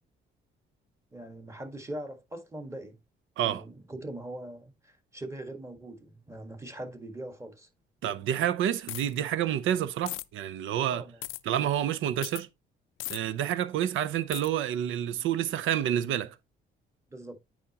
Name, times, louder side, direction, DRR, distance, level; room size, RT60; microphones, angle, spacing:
voice 1, 1.1-3.0 3.4-7.7 10.9-11.2 17.1-17.4, right 1 dB, 15° right, 1.6 m, -41 dB
voice 2, 8.0-11.1 11.5-12.5 13.1-16.3, right 10 dB, 80° right, 0.7 m, -29 dB
sound 1, 8.9-9.2 10.1-10.2 11.2-11.4 12.2-12.4 13.0-13.2 14.3-14.5, left 17 dB, 90° left, 0.4 m, -37 dB
8.9 x 5.0 x 2.9 m
cardioid pair, 90°, 20 cm